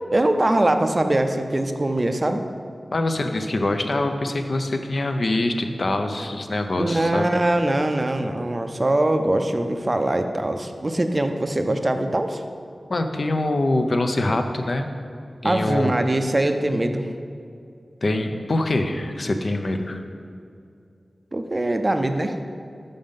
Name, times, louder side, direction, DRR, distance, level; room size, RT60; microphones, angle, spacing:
voice 1, 0.1-2.4 6.8-12.4 15.4-17.1 21.3-22.4, right 1 dB, 30° right, 7 dB, 0.4 m, -22 dB
voice 2, 2.9-7.2 12.9-14.9 15.4-16.0 18.0-20.0, left 2 dB, 55° left, 6 dB, 0.5 m, -24 dB
5.4 x 5.3 x 5.2 m, 2.4 s
wide cardioid pair, 85°, 0 cm